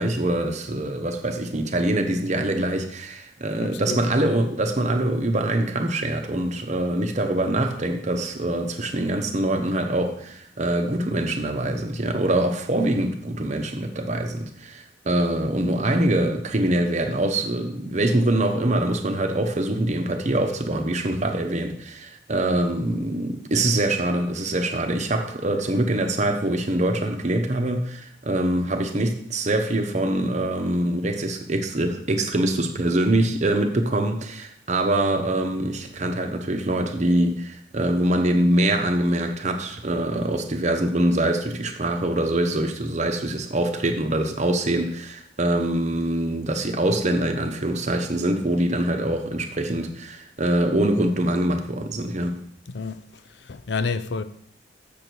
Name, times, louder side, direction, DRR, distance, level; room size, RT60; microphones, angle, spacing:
voice 1, 0.0-52.4, right 1 dB, 40° right, 0.9 m, -24 dB
voice 2, 3.6-4.0 52.7-53.0 53.4-54.2, left 4 dB, 65° left, 0.5 m, -29 dB
7.0 x 6.8 x 4.6 m
head